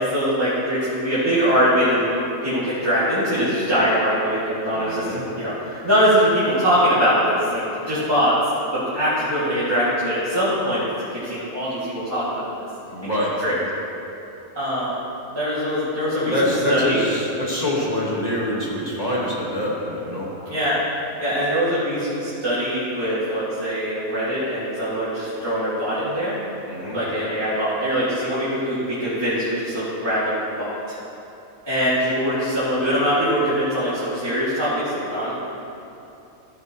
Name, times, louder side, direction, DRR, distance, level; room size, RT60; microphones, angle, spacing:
voice 1, 0.0-8.4 8.7-12.7 13.0-13.1 13.4-13.5 14.5-14.9 15.3-17.0 20.5-20.8 21.2-26.4 26.9-31.0 31.7-35.3, equal, 20° right, -13 dB, 2.0 m, -22 dB
voice 2, 4.7-5.2 12.9-13.3 16.0-20.3 26.7-27.0, left 1 dB, 30° left, -5 dB, 1.6 m, -25 dB
14.5 x 7.8 x 3.0 m, 2.9 s
omnidirectional pair, 1.4 m